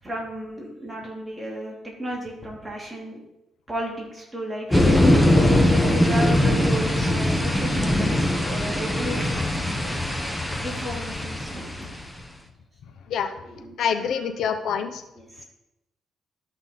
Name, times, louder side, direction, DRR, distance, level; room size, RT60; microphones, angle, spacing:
voice 1, 0.0-3.2 3.7-5.0 5.7-9.9 10.6-12.0 13.4-14.4 15.1-15.5, equal, 15° right, -3 dB, 3.2 m, -34 dB
sound 1, 4.7-12.2, left 1 dB, 10° left, 1.2 m, -21 dB
voice 2, 13.8-15.0, left 7 dB, 70° left, 8 dB, 1.0 m, -26 dB
13.0 x 5.7 x 4.2 m, 0.93 s
cardioid pair, 90°, 0 cm